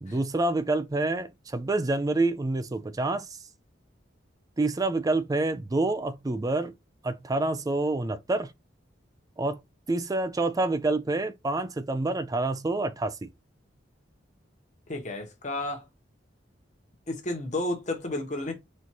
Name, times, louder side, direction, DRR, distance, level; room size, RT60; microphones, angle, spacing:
voice 1, 0.0-3.3 4.6-6.7 7.0-8.5 9.4-9.6 9.9-13.3, right 2 dB, 20° right, 0.4 m, -27 dB
voice 2, 14.9-15.9 17.1-18.5, left 1 dB, 40° left, 1.2 m, -32 dB
4.3 x 2.6 x 4.5 m
head